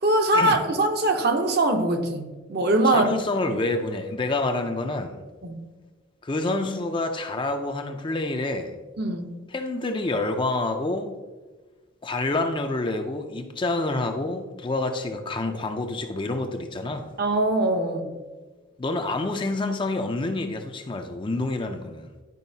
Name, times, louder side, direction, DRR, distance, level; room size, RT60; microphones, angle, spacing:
voice 1, 0.0-3.2 5.4-5.6 9.0-9.4 17.2-18.1, right 2 dB, 50° right, 0.7 m, -22 dB
voice 2, 2.8-5.2 6.2-8.7 9.5-11.1 12.0-17.1 18.8-22.1, left 2 dB, 25° left, 0.4 m, -27 dB
10.5 x 4.8 x 2.7 m
head